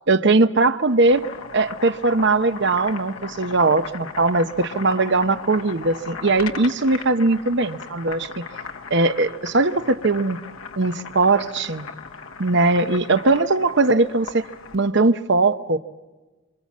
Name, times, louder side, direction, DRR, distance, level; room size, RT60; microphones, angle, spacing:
voice 1, 0.1-1.3 1.5-8.4 8.9-10.4 10.8-11.9 12.4-14.4 14.7-15.8, right 3 dB, 55° right, 11 dB, 0.9 m, -20 dB
Boiling, 0.8-14.9, left 5 dB, 70° left, 1.2 m, -37 dB
26.5 x 25.5 x 7.4 m, 1.2 s
head